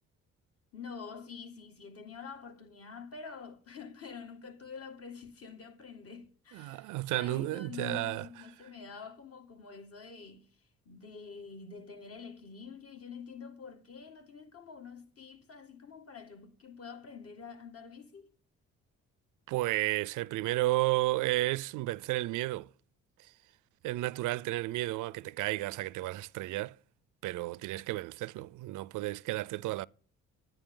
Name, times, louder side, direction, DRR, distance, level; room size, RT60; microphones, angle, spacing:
voice 1, 0.7-10.5 10.9-18.3, left 5 dB, 50° left, 2.0 m, -47 dB
voice 2, 6.5-8.3 19.5-22.7 23.8-26.7 27.2-29.9, right 18 dB, 85° right, 0.4 m, -32 dB
11.0 x 10.0 x 3.7 m
cardioid pair, 90°, 30 cm